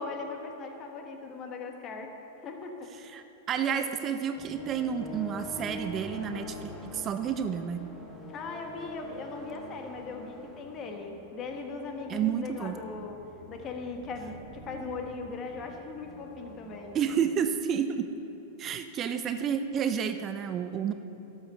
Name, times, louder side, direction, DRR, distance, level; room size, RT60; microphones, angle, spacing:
voice 1, 0.0-2.1 2.4-2.9 3.7-3.9 8.3-13.2 13.5-17.0, left 4 dB, 35° left, 3 dB, 1.4 m, -39 dB
voice 2, 3.1-7.8 12.1-12.8 16.9-18.1 18.6-20.9, right 8 dB, 30° right, 8 dB, 0.5 m, -30 dB
sound 1, 4.4-17.4, left 1 dB, 15° left, 1.6 m, -45 dB
12.5 x 6.4 x 6.8 m, 2.9 s
figure-of-eight pair, 95°, 0 cm